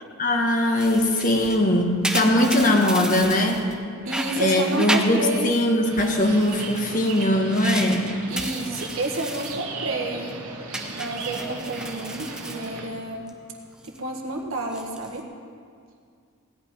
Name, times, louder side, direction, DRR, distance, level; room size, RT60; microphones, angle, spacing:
voice 1, 0.2-3.6 4.4-8.1, left 1 dB, 35° left, 2 dB, 1.4 m, -21 dB
sound 1, 0.8-3.8 4.1-5.7 6.0-9.6 10.0-10.3 10.7-13.3 13.6-14.0 14.6-15.2, right 1 dB, 5° right, 0.7 m, -33 dB
voice 2, 4.0-5.5 8.3-10.3 10.9-13.3 13.8-15.2, right 2 dB, 60° right, 1 dB, 1.7 m, -30 dB
sound 2, 5.8-12.9, right 3 dB, 85° right, 1.9 m, -36 dB
16.5 x 5.8 x 9.7 m, 2.2 s
head